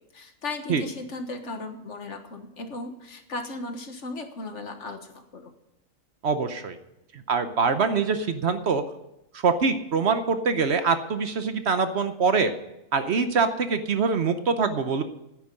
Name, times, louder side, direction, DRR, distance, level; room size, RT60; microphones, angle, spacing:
voice 1, 0.0-5.5, left 2 dB, 60° left, 6 dB, 1.7 m, -36 dB
voice 2, 6.2-6.8 7.1-8.8 9.3-12.5 12.9-15.0, right 5 dB, 55° right, 9 dB, 1.1 m, -24 dB
9.8 x 9.1 x 9.5 m, 0.88 s
omnidirectional pair, 1.4 m